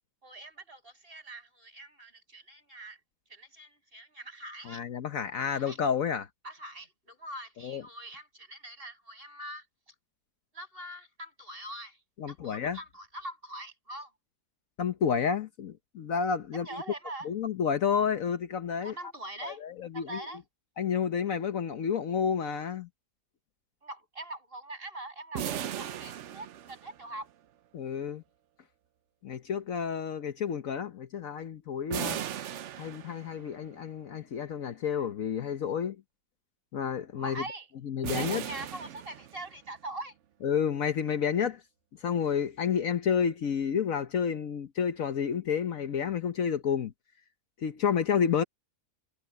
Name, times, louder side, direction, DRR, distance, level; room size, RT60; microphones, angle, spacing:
voice 1, 0.2-3.0 3.3-4.8 5.5-5.8 6.4-9.9 10.5-12.0 12.3-14.1 16.5-17.3 18.8-19.6 19.9-20.4 23.8-27.3 37.2-37.7 38.1-40.2, right 1 dB, 35° right, 7.1 m, -43 dB
voice 2, 4.7-6.3 7.6-7.8 12.2-12.8 14.8-16.8 17.2-18.9 19.4-20.2 20.8-22.9 27.7-28.2 29.2-32.2 32.8-36.0 36.7-37.4 37.8-38.4 40.4-41.6 42.0-46.9 47.6-48.4, left 7 dB, 60° left, 1.2 m, -30 dB
sound 1, 25.3-27.2 31.9-33.5 38.0-39.7, right 10 dB, 60° right, 0.9 m, -37 dB
omnidirectional pair, 1.6 m